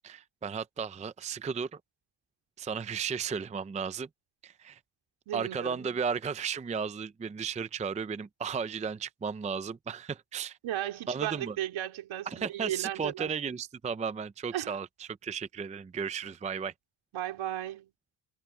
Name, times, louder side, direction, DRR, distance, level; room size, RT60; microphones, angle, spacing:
voice 1, 0.0-1.8 2.6-4.1 4.4-4.8 5.3-10.6 11.1-11.6 12.3-16.7, right 6 dB, 15° right, 0.5 m, -34 dB
voice 2, 5.3-5.9 10.6-13.3 14.5-14.7 17.1-17.9, right 13 dB, 70° right, 3.8 m, -35 dB
cardioid pair, 115°, 49 cm